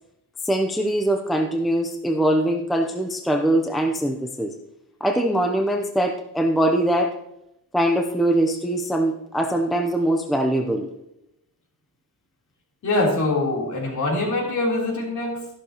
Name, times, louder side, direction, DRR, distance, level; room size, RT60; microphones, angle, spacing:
voice 1, 0.4-4.5 5.0-7.1 7.7-10.9, right 1 dB, ahead, 4 dB, 0.6 m, -22 dB
voice 2, 12.8-15.5, left 2 dB, 55° left, -2 dB, 3.5 m, -23 dB
13.5 x 11.5 x 2.9 m, 0.85 s
wide cardioid pair, 165°, 36 cm